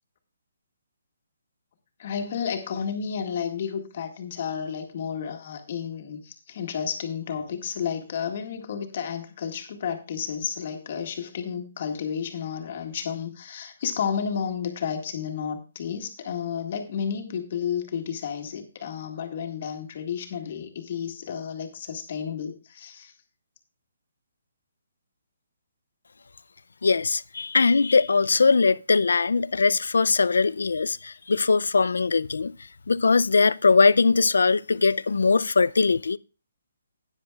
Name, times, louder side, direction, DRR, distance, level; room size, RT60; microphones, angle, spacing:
voice 1, 2.0-23.1, left 7 dB, 45° left, 1.8 m, -32 dB
voice 2, 26.8-32.5 32.9-36.2, left 4 dB, 90° left, 0.4 m, -21 dB
13.5 x 9.8 x 2.3 m
hypercardioid pair, 160°, 0 cm